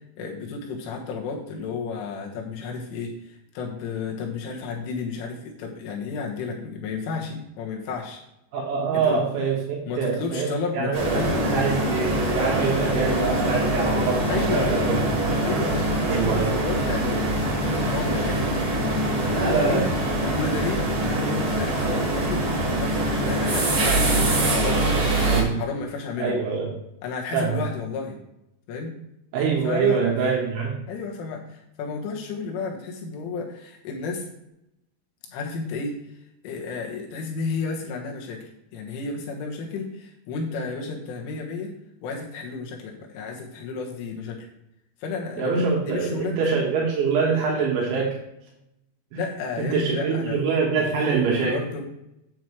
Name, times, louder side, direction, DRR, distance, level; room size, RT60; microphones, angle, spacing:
voice 1, 0.2-8.2 8.9-9.3 9.9-11.6 14.3-14.8 15.4-19.9 20.4-20.8 21.2-26.4 27.0-28.2 28.7-28.9 29.6-30.0 30.9-34.3 35.3-36.0 36.4-41.7 42.0-44.5 45.0-46.4 49.1-50.4 50.7-50.9 51.2-51.8, left 4 dB, 85° left, -1 dB, 3.8 m, -32 dB
voice 2, 8.5-15.0 16.0-16.6 19.3-19.9 25.2-25.6 26.2-26.7 27.3-27.6 29.3-30.8 45.4-48.2 49.1-49.2 49.6-51.5, right 5 dB, 75° right, -2 dB, 3.6 m, -24 dB
sound 1, 10.9-25.4, right 1 dB, 45° right, 3.3 m, -24 dB
8.9 x 7.6 x 3.1 m, 0.84 s
omnidirectional pair, 5.6 m